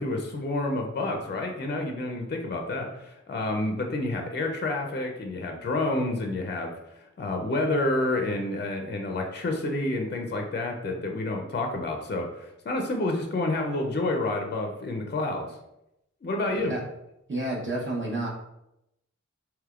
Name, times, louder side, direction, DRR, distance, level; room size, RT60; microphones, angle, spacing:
voice 1, 0.0-15.6 16.2-16.7, left 2 dB, 35° left, 3 dB, 0.4 m, -29 dB
voice 2, 17.3-18.3, right 2 dB, 40° right, -5 dB, 0.8 m, -30 dB
3.4 x 2.9 x 2.3 m, 0.86 s
wide cardioid pair, 50°, 30 cm